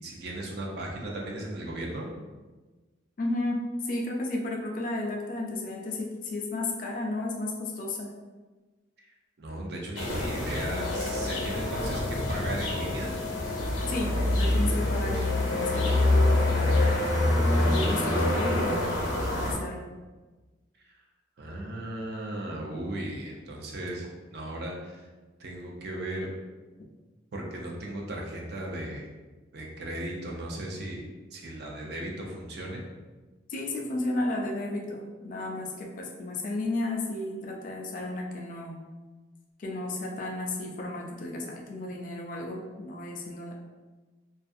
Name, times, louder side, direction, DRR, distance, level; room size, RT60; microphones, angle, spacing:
voice 1, 0.0-2.1 9.0-9.1 9.4-13.1 21.4-25.1 25.4-26.3 27.3-29.1 29.5-31.0 31.3-32.8, right 1 dB, 55° right, -1 dB, 0.4 m, -36 dB
voice 2, 3.2-8.1 13.9-17.1 17.6-19.0 19.3-19.9 33.5-38.8 39.6-43.5, left 2 dB, 45° left, 1 dB, 0.3 m, -33 dB
sound 1, 10.0-19.5, left 2 dB, 85° left, 0.6 m, -26 dB
2.4 x 2.3 x 2.5 m, 1.3 s
head